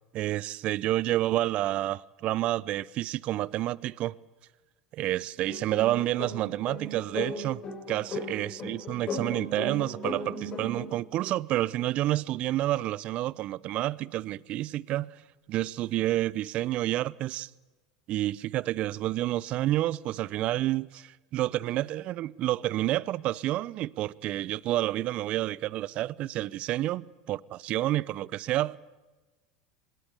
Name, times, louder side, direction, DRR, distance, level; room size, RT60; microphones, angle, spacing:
voice 1, 0.1-4.1 4.9-7.6 7.9-15.2 15.5-17.5 18.1-28.8, right 15 dB, 50° right, 0.7 m, -29 dB
sound 1, 5.5-10.9, left 1 dB, 35° left, 5.5 m, -36 dB
25.0 x 22.0 x 8.2 m
hypercardioid pair, 80°, 3 cm